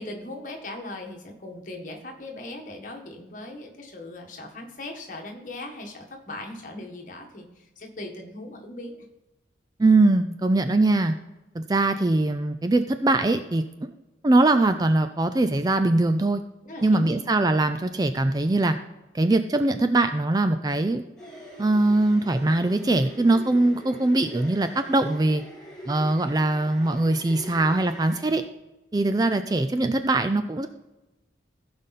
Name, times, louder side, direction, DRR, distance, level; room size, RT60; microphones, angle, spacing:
voice 1, 0.0-9.0 16.6-17.1 17.8-17.9, left 1 dB, 45° left, 1 dB, 1.6 m, -39 dB
voice 2, 9.8-11.1 11.6-13.6 14.2-16.4 16.8-18.8 19.1-21.0 21.6-25.4 25.9-28.4 28.9-30.7, right 2 dB, 20° right, 9 dB, 0.4 m, -22 dB
sound 1, 21.2-28.4, equal, 5° left, 3.3 m, -44 dB
15.0 x 5.2 x 4.2 m, 0.99 s
head